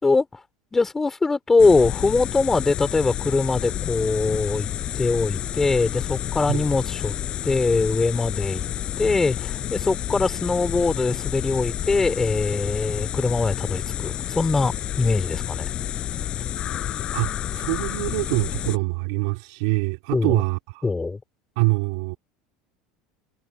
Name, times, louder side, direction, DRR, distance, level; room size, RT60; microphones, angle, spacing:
voice 1, 0.0-0.4 0.7-4.7 5.0-7.1 7.4-8.6 9.0-15.7 20.1-20.4 20.8-21.2, left 3 dB, 15° left, 4.8 m, -22 dB
sound 1, 1.6-18.8, left 11 dB, 40° left, 5.9 m, -30 dB
voice 2, 17.1-20.8 21.6-22.2, right 26 dB, 75° right, 4.4 m, -25 dB
supercardioid pair, 115°, 2 cm